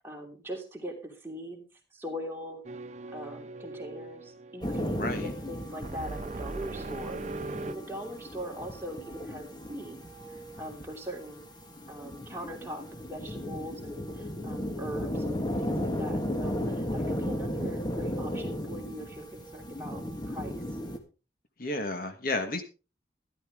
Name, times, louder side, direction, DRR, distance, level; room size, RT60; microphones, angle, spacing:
voice 1, 0.0-1.6 1.9-2.6 3.1-10.0 10.6-11.4 11.9-12.8 13.1-20.8, equal, 10° right, 0 dB, 2.9 m, -41 dB
sound 1, 2.6-7.7, right 3 dB, 40° right, 0.5 m, -40 dB
sound 2, 4.6-21.0, equal, 20° left, 1.6 m, -35 dB
voice 2, 5.0-5.3 21.6-22.6, left 2 dB, 50° left, 7 dB, 1.4 m, -31 dB
13.0 x 12.5 x 3.6 m, 0.32 s
head